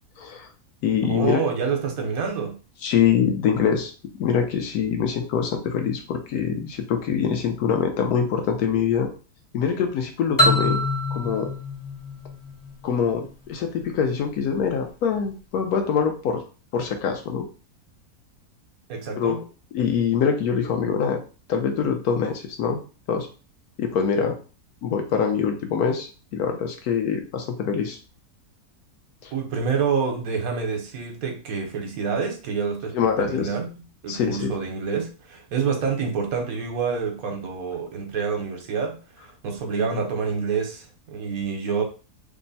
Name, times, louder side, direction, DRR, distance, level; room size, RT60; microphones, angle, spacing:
voice 1, 0.2-0.5 0.8-1.4 2.8-3.9 4.2-9.1 9.5-10.8 11.1-11.5 12.8-16.4 16.7-17.5 19.2-19.4 19.7-21.2 21.5-22.8 23.1-23.3 23.8-24.3 24.8-28.0 29.2-29.3 32.9-33.5 34.1-34.5, left 7 dB, 75° left, 4 dB, 1.2 m, -24 dB
voice 2, 1.0-2.6 18.9-19.4 29.3-33.7 34.0-41.8, right 5 dB, 65° right, 3 dB, 1.2 m, -27 dB
sound 1, 10.4-13.1, left 1 dB, 30° left, 0.4 m, -24 dB
3.5 x 2.1 x 4.0 m, 0.35 s
omnidirectional pair, 1.7 m